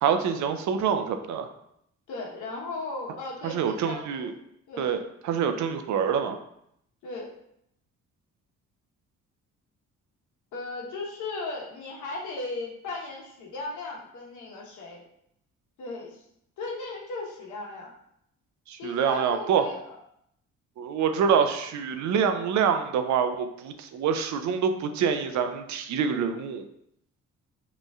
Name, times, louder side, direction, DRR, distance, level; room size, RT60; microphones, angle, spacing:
voice 1, 0.0-1.5 3.4-4.3 4.8-5.0 5.2-6.4 18.7-19.6 20.8-26.6, right 7 dB, 70° right, 8 dB, 0.5 m, -26 dB
voice 2, 2.1-4.3 4.7-4.9 7.0-7.3 10.5-15.0 15.8-16.2 16.6-17.9 18.8-20.0, left 3 dB, 80° left, -2 dB, 1.1 m, -36 dB
5.2 x 3.1 x 2.4 m, 0.75 s
cardioid pair, 90°, 30 cm